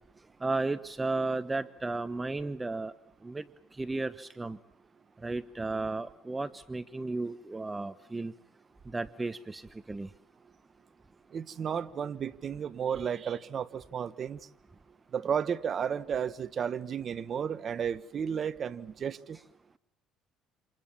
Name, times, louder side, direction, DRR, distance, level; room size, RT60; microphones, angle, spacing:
voice 1, 0.4-2.9 3.2-3.4 3.8-4.6 5.2-8.3 8.9-10.1, right 3 dB, 15° right, 1.0 m, -34 dB
voice 2, 11.3-14.4 15.1-19.4, right 7 dB, 45° right, 1.3 m, -33 dB
28.5 x 28.0 x 7.3 m
supercardioid pair, 90°, 0 cm